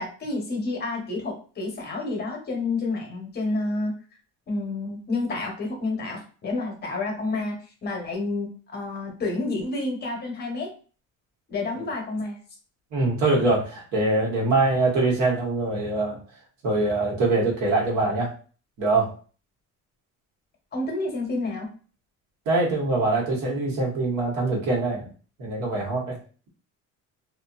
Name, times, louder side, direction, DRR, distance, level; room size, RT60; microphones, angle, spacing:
voice 1, 0.0-3.9 4.5-10.7 11.5-12.4 20.7-21.7, left 2 dB, 35° left, 1 dB, 0.9 m, -29 dB
voice 2, 12.9-16.2 16.6-18.3 18.8-19.1 22.5-25.1 25.4-26.2, right 2 dB, 75° right, -2 dB, 1.2 m, -23 dB
2.6 x 2.4 x 2.3 m, 0.38 s
cardioid pair, 150°, 30 cm